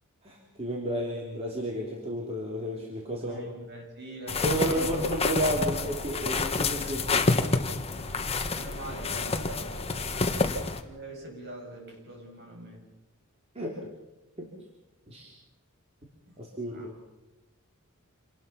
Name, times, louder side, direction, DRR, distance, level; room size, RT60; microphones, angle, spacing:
voice 1, 0.2-3.5 4.4-7.0 10.3-10.6 13.5-13.8 14.4-14.5 15.1-15.3 16.4-16.9, equal, 30° right, -2 dB, 3.3 m, -32 dB
voice 2, 3.2-4.9 6.8-7.4 7.7-10.0 10.7-12.8 16.2-16.4 16.7-16.9, right 1 dB, 50° right, 0 dB, 7.5 m, -44 dB
sound 1, 4.3-10.8, left 3 dB, 30° left, 1.4 m, -28 dB
Mallet percussion, 8.9-11.0, right 1 dB, 85° right, 4.8 m, -47 dB
27.5 x 19.5 x 5.9 m, 1.0 s
head